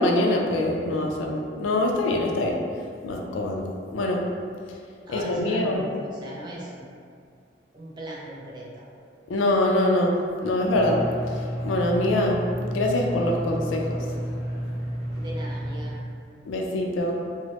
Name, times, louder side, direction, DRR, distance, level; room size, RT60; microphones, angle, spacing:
voice 1, 0.0-2.5 3.0-4.2 5.1-5.8 9.3-11.0 11.3-12.4 12.7-14.0 16.4-17.1, left 1 dB, 90° left, 1 dB, 0.4 m, -24 dB
voice 2, 5.1-6.9 7.7-8.9 15.1-16.0, right 1 dB, 25° right, -5 dB, 0.4 m, -39 dB
sound 1, 10.7-15.9, equal, 65° right, 1.0 m, -31 dB
3.0 x 2.0 x 2.8 m, 2.3 s
head